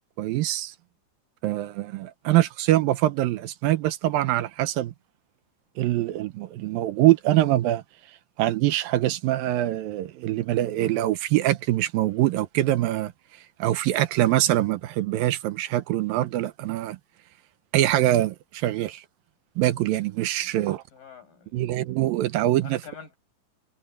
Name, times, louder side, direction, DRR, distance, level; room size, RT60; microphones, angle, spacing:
voice 1, 0.2-0.7 1.4-4.9 5.8-7.8 8.4-13.1 13.6-17.0 17.7-19.0 19.6-20.8 21.5-22.8, right 15 dB, 80° right, 2.5 m, -24 dB
voice 2, 20.4-21.7 22.6-23.2, left 6 dB, 65° left, 8.0 m, -46 dB
omnidirectional pair, 4.3 m